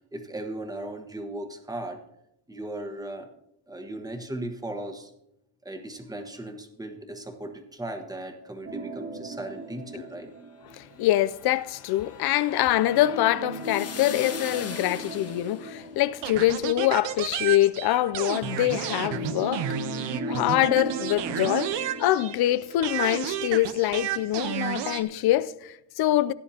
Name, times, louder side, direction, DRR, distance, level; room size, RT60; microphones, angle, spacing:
voice 1, 0.1-2.0 2.5-3.3 3.7-5.1 5.6-10.3, right 1 dB, 10° right, 1.3 m, -37 dB
sound 1, 8.6-11.3 12.8-17.2 18.4-23.3 23.7-23.8 24.4-24.5, right 1 dB, 50° right, 2.1 m, -38 dB
voice 2, 10.7-26.3, left 14 dB, 60° left, 0.5 m, -25 dB
sound 2, 11.1-15.7, left 6 dB, 35° left, 1.2 m, -42 dB
sound 3, 16.2-22.5 22.8-25.0, right 10 dB, 70° right, 1.0 m, -31 dB
17.0 x 9.5 x 2.8 m
cardioid pair, 140°, 44 cm